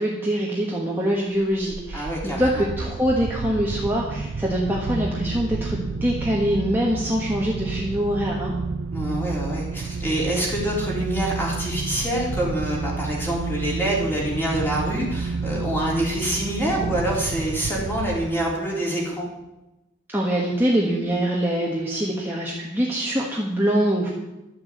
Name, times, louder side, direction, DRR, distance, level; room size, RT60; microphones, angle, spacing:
voice 1, 0.0-8.5 20.1-24.1, equal, 10° right, -4 dB, 1.5 m, -24 dB
sound 1, 1.4-18.7, right 4 dB, 65° right, 0.5 m, -30 dB
voice 2, 1.9-2.6 8.9-19.3, right 1 dB, 10° left, -4 dB, 3.7 m, -26 dB
12.0 x 7.1 x 8.2 m, 0.98 s
head